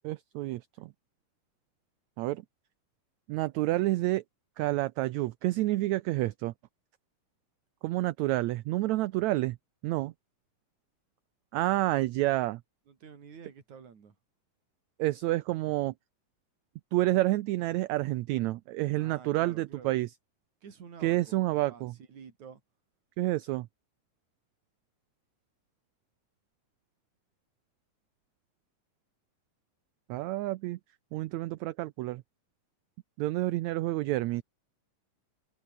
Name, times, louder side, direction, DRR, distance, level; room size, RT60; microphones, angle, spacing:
voice 1, 0.0-0.9 2.2-2.4 3.3-4.2 4.6-6.5 7.8-9.6 9.8-10.1 11.5-12.6 15.0-15.9 16.9-20.1 21.0-21.9 23.2-23.7 30.1-30.8 31.1-32.2 33.2-34.4, right 17 dB, 75° right, 1.7 m, -29 dB
voice 2, 12.9-14.2 19.0-20.0 20.6-21.4 21.7-22.6, right 6 dB, 60° right, 4.6 m, -49 dB
omnidirectional pair, 3.8 m